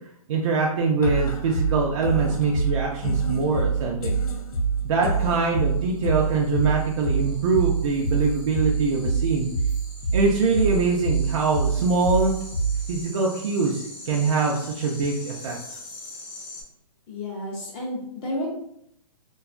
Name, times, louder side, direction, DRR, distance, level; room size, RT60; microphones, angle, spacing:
voice 1, 0.3-4.1 4.8-9.5 10.1-12.3 12.9-15.6, right 4 dB, 55° right, -2 dB, 0.4 m, -23 dB
sound 1, 1.0-13.0, right 4 dB, 75° left, 0.6 m, -26 dB
sound 2, 5.4-16.6, left 2 dB, 35° left, 0.9 m, -43 dB
voice 2, 17.1-18.5, left 1 dB, 20° left, -2 dB, 0.5 m, -31 dB
2.7 x 2.2 x 2.4 m, 0.72 s
hypercardioid pair, 160°, 19 cm